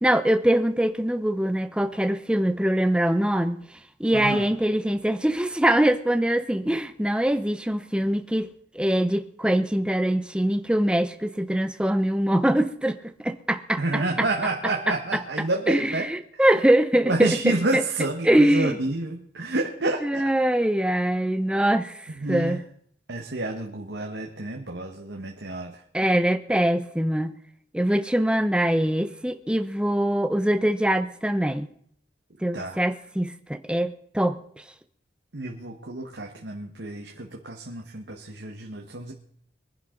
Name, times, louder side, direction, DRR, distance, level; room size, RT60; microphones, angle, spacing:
voice 1, 0.0-3.6 4.0-8.5 8.7-14.0 14.9-15.2 15.7-17.8 18.2-18.8 20.0-22.0 22.3-22.6 25.9-27.3 27.7-31.7 32.4-34.4, right 1 dB, 5° right, 0.7 m, -23 dB
voice 2, 4.1-4.5 13.8-16.1 17.1-20.3 22.1-22.6 23.1-25.8 32.5-32.8 35.3-39.1, right 2 dB, 80° right, 1.6 m, -29 dB
23.0 x 11.0 x 3.9 m
head